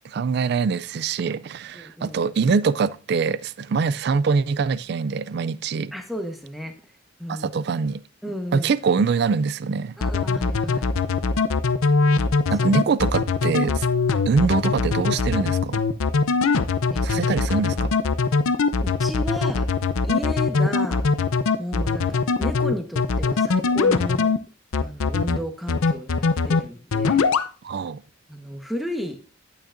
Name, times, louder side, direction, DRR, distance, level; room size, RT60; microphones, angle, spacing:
voice 1, 0.0-5.9 7.3-8.0 8.5-10.0 12.5-13.9 14.3-15.8 17.0-17.9 27.6-28.0, right 5 dB, 50° right, 0.3 m, -23 dB
voice 2, 1.7-2.2 5.9-6.7 7.2-7.5 8.2-8.7 10.0-10.9 16.9-17.4 18.8-19.7 20.0-21.1 21.6-24.3 24.8-27.3 28.3-29.2, equal, ahead, 1.1 m, -33 dB
sound 1, 10.0-24.4 24.7-25.4 25.7-26.6 26.9-27.5, left 4 dB, 85° left, 0.6 m, -21 dB
11.5 x 8.7 x 2.6 m
head